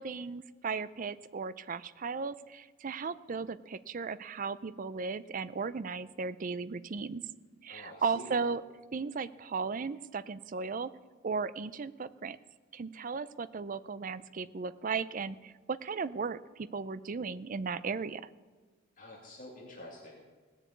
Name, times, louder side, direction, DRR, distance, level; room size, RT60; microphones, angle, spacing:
voice 1, 0.0-7.2 7.6-8.6 8.9-10.9 11.2-12.4 12.7-18.2, right 5 dB, 40° right, 15 dB, 0.4 m, -36 dB
voice 2, 7.7-8.3 19.0-20.3, left 1 dB, 40° left, -3 dB, 2.4 m, -48 dB
18.0 x 6.9 x 8.5 m, 1.4 s
head